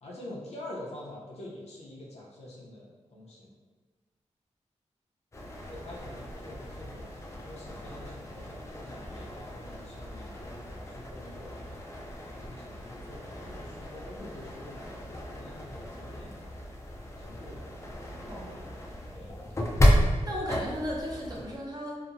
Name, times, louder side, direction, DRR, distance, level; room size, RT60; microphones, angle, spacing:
voice 1, 0.0-3.5 5.6-7.0 7.4-11.8 12.3-16.4 17.2-17.6 18.7-19.6, left 1 dB, 65° left, -4 dB, 0.7 m, -46 dB
sound 1, 5.3-21.6, equal, 25° left, 0.4 m, -33 dB
voice 2, 20.3-22.0, equal, 35° right, -4 dB, 0.6 m, -35 dB
2.8 x 2.1 x 2.5 m, 1.3 s
wide cardioid pair, 130°, 12 cm